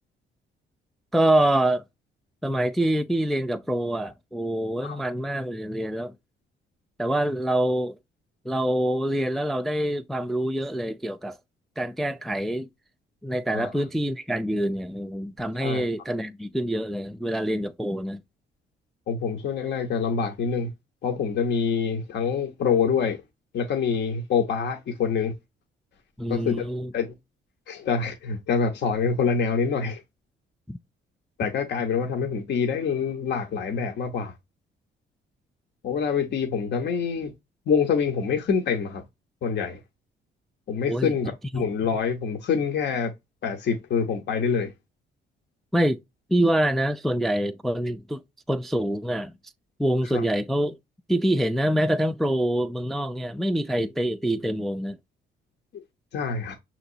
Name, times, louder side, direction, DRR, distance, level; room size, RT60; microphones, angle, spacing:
voice 1, 1.1-1.8 2.4-6.1 7.0-8.0 8.5-11.4 11.8-12.7 13.2-18.2 26.2-26.9 30.7-30.8 40.9-41.1 41.5-41.6 45.7-46.0 46.3-48.2 48.5-49.3 49.8-50.8 51.1-55.0, right 1 dB, ahead, 0.3 m, -25 dB
voice 2, 13.5-13.8 15.6-15.9 19.1-20.7 21.0-23.2 23.5-25.3 26.3-26.6 26.9-27.1 27.7-30.0 31.4-34.3 35.8-37.3 37.7-39.0 39.4-39.8 40.7-43.1 43.4-44.7 50.1-50.2 56.1-56.5, left 6 dB, 60° left, 0.8 m, -26 dB
5.8 x 2.9 x 2.7 m
cardioid pair, 90°, 20 cm